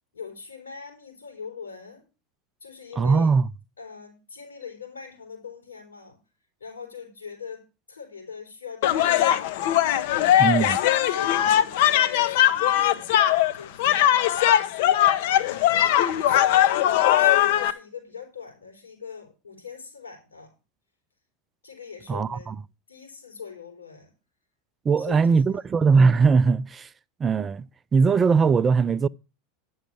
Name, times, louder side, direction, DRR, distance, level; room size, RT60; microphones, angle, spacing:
voice 1, 0.1-2.0 2.6-3.3 3.8-6.2 6.6-9.4 10.1-10.7 11.0-15.1 15.7-20.5 21.6-22.6 22.9-24.1 25.0-25.6, left 6 dB, 85° left, 4.9 m, -42 dB
voice 2, 3.0-3.5 10.4-10.8 22.1-22.6 24.8-26.9 27.2-29.1, right 5 dB, 25° right, 0.4 m, -20 dB
sound 1, 8.8-17.7, left 12 dB, 60° left, 0.9 m, -20 dB
10.0 x 6.4 x 6.8 m
figure-of-eight pair, 80°, 0 cm